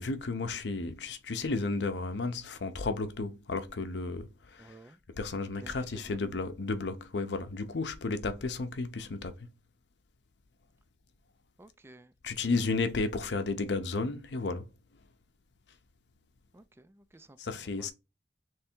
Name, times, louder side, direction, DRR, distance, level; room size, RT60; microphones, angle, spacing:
voice 1, 0.0-4.8 5.1-9.5 12.2-14.7 17.4-17.9, left 3 dB, 80° left, 0.7 m, -33 dB
voice 2, 4.6-5.0 5.6-6.2 11.6-12.5 16.5-17.9, right 1 dB, 15° right, 0.3 m, -54 dB
3.4 x 3.2 x 4.4 m
head